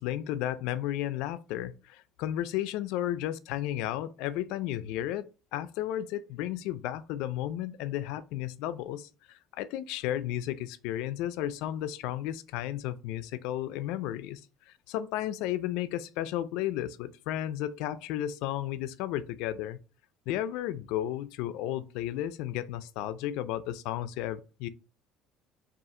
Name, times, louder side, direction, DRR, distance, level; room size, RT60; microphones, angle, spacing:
voice 1, 0.0-14.4 14.7-19.8 20.3-24.7, left 12 dB, 85° left, 0.4 m, -33 dB
3.6 x 2.4 x 4.1 m
cardioid pair, 140°, 0 cm